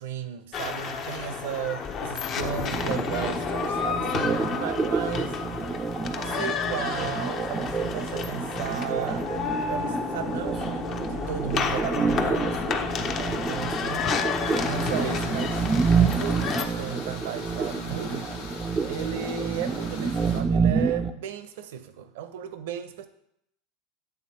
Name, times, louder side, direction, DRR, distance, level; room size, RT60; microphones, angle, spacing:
voice 1, 0.0-5.4 6.1-9.3 9.7-14.2 14.6-15.7 16.2-18.3 18.9-23.1, right 9 dB, 75° right, 11 dB, 0.5 m, -35 dB
sound 1, 0.5-16.7, left 6 dB, 45° left, 0.5 m, -31 dB
sound 2, 2.7-21.1, right 5 dB, 25° right, 0.3 m, -28 dB
sound 3, 14.4-20.4, left 4 dB, 80° left, 0.9 m, -40 dB
7.9 x 3.5 x 4.1 m, 0.78 s
hypercardioid pair, 95°, 0 cm